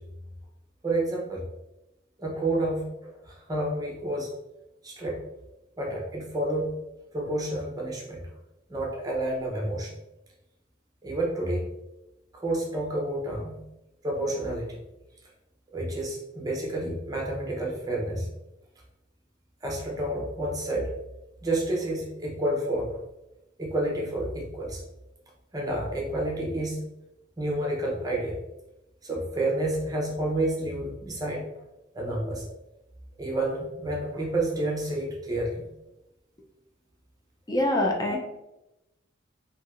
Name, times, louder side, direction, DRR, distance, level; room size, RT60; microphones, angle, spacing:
voice 1, 0.8-1.4 2.2-4.3 4.8-5.2 5.8-6.7 7.1-8.2 8.7-9.9 11.0-11.6 12.4-13.6 14.0-14.8 15.7-18.3 19.6-20.9 21.4-23.0 23.6-24.8 25.5-26.8 27.4-28.4 29.0-31.4 31.9-32.4 33.2-35.7 38.1-38.2, right 1 dB, 20° right, -2 dB, 0.6 m, -29 dB
voice 2, 37.5-38.2, left 1 dB, 20° left, 0 dB, 0.5 m, -24 dB
3.2 x 2.7 x 2.4 m, 0.95 s
head